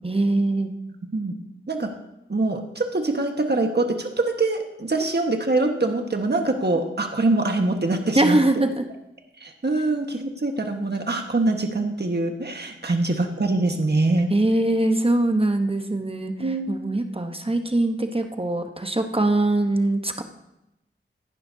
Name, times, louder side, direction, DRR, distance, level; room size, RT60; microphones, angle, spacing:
voice 1, 0.0-0.7 8.2-8.8 14.3-16.3 16.7-20.2, right 2 dB, 25° right, 6 dB, 1.0 m, -22 dB
voice 2, 2.3-8.4 9.4-14.3 16.4-16.7, right 2 dB, 55° right, 4 dB, 1.5 m, -24 dB
15.0 x 11.0 x 2.8 m, 0.89 s
wide cardioid pair, 45°, 21 cm